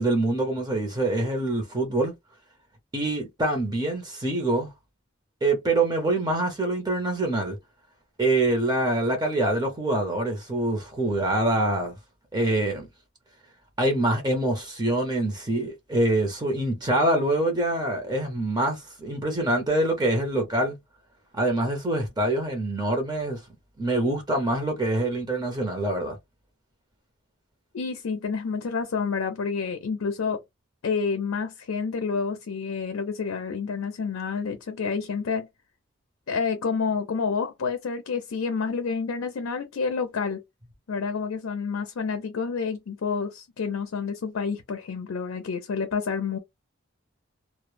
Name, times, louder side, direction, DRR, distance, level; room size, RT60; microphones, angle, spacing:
voice 1, 0.0-2.1 2.9-4.7 5.4-7.6 8.2-12.0 12.3-12.9 13.8-20.8 21.3-23.4 23.8-26.2, right 2 dB, 20° right, 0.6 m, -25 dB
voice 2, 27.7-30.4 30.8-35.5 36.3-40.4 40.9-46.4, left 5 dB, 80° left, 0.5 m, -29 dB
2.0 x 2.0 x 3.1 m
head